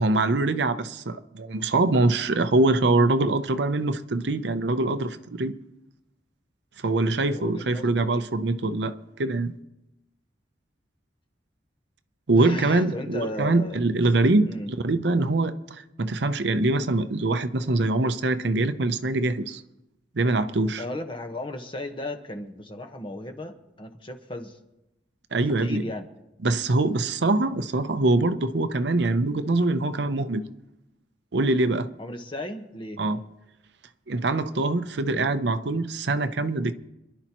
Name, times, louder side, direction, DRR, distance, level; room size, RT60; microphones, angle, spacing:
voice 1, 0.0-5.5 6.8-9.5 12.3-19.6 20.2-20.8 25.3-25.8 26.4-30.4 31.3-31.9 33.0-33.2 34.1-36.7, right 2 dB, 65° right, 0.7 m, -24 dB
voice 2, 7.3-8.1 12.4-13.8 14.5-14.7 20.8-24.6 25.3-26.1 32.0-33.0, left 1 dB, 30° left, 1.2 m, -35 dB
27.0 x 11.0 x 3.0 m
head